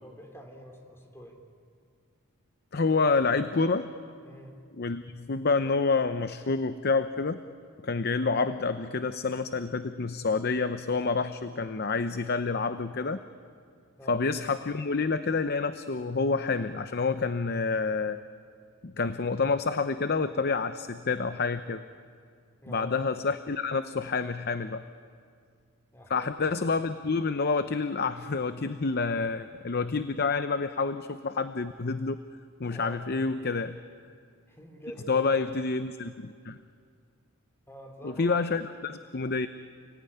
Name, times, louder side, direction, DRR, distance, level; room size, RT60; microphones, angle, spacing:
voice 1, 0.0-1.4 4.2-4.6 14.0-14.2 22.6-23.1 25.9-26.3 32.7-33.0 34.5-35.3 37.7-38.6, equal, 10° left, 3 dB, 3.3 m, -46 dB
voice 2, 2.7-3.9 4.8-7.4 7.8-13.2 14.1-18.2 18.8-21.8 22.7-24.8 26.1-32.2 32.6-33.8 35.1-36.6 38.0-39.5, left 4 dB, 50° left, 11 dB, 0.7 m, -28 dB
30.0 x 18.0 x 10.0 m, 2.2 s
head